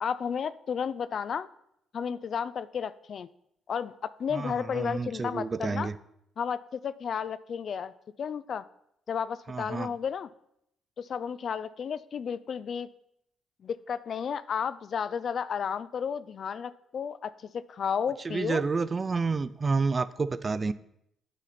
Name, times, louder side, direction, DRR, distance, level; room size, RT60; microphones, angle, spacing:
voice 1, 0.0-1.5 1.9-3.3 3.7-5.9 6.4-7.9 8.2-8.6 9.1-10.3 11.0-12.9 13.6-18.6, left 7 dB, 55° left, 17 dB, 0.3 m, -32 dB
voice 2, 4.3-6.0 9.5-9.9 18.2-20.7, right 4 dB, 30° right, 16 dB, 0.4 m, -29 dB
9.0 x 4.1 x 5.8 m, 0.77 s
cardioid pair, 90°, 0 cm